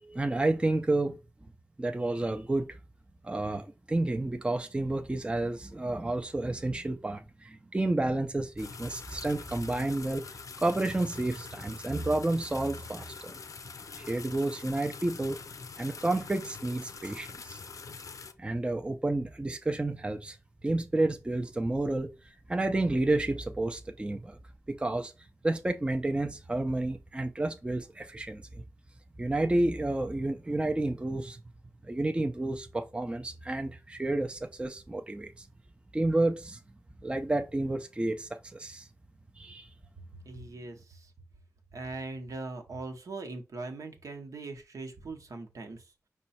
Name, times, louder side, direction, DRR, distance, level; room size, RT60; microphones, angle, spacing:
voice 1, 0.0-1.2 1.8-2.8 3.2-10.2 10.6-13.3 14.0-15.4 15.8-17.6 18.4-20.4 20.6-22.1 22.5-24.4 24.7-25.1 25.4-28.6 29.2-31.4 31.9-35.5 35.9-36.6 37.0-38.9 39.4-39.7, right 2 dB, 20° right, 0.4 m, -30 dB
sound 1, 8.6-18.3, left 5 dB, 70° left, 0.5 m, -44 dB
voice 2, 40.3-41.1 41.7-45.8, right 3 dB, 75° right, 0.9 m, -40 dB
5.3 x 2.2 x 4.2 m
wide cardioid pair, 85°, 6 cm